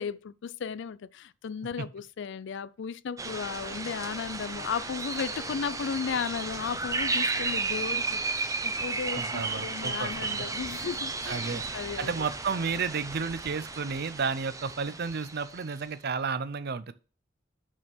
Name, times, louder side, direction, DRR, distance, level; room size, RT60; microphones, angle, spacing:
voice 1, 0.0-12.2, left 6 dB, 65° left, 0.4 m, -35 dB
sound 1, 3.2-15.7, right 3 dB, 15° right, 0.7 m, -34 dB
voice 2, 9.1-10.2 11.3-11.6 12.0-16.9, right 5 dB, 55° right, 0.6 m, -32 dB
6.3 x 6.1 x 6.0 m
head